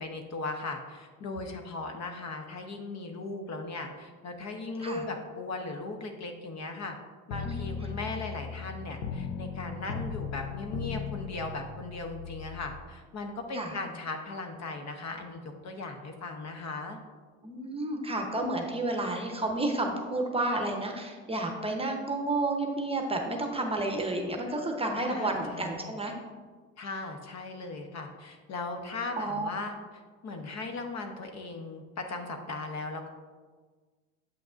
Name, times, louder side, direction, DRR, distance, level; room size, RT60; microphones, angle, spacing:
voice 1, 0.0-7.0 7.3-17.0 24.9-26.0 26.8-29.8 30.2-33.1, left 3 dB, 45° left, 4 dB, 0.9 m, -38 dB
sound 1, 7.3-12.8, left 6 dB, 70° left, 0.8 m, -37 dB
voice 2, 7.4-7.9 13.5-13.8 17.4-26.1 29.2-29.5, right 2 dB, 15° right, 2 dB, 0.9 m, -31 dB
7.8 x 5.7 x 2.5 m, 1.4 s
supercardioid pair, 80°, 38 cm